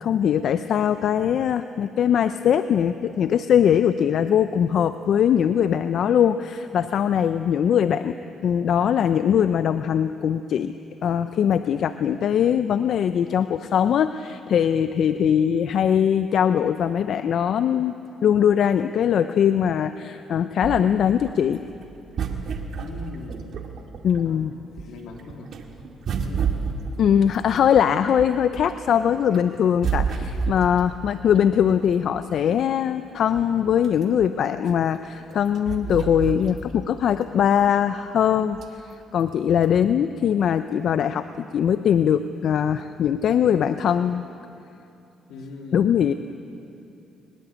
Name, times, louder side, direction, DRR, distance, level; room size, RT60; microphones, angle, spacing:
voice 1, 0.0-8.2 8.4-10.7 11.0-17.9 18.2-21.6 24.0-24.5 27.0-38.9 39.1-44.2 45.7-46.1, left 8 dB, 65° left, 11 dB, 0.6 m, -21 dB
sound 1, 20.6-24.4 24.7-28.9 29.3-32.2 32.8-32.9 33.1-36.9 37.3-37.4 38.5-38.9 39.6-39.7, right 6 dB, 60° right, 2.1 m, -30 dB
voice 2, 22.7-23.5 24.2-24.5 24.8-25.5 26.2-26.5 45.3-45.9, left 3 dB, 90° left, 1 dB, 3.5 m, -39 dB
23.0 x 20.5 x 8.4 m, 2.8 s
cardioid pair, 90°, 0 cm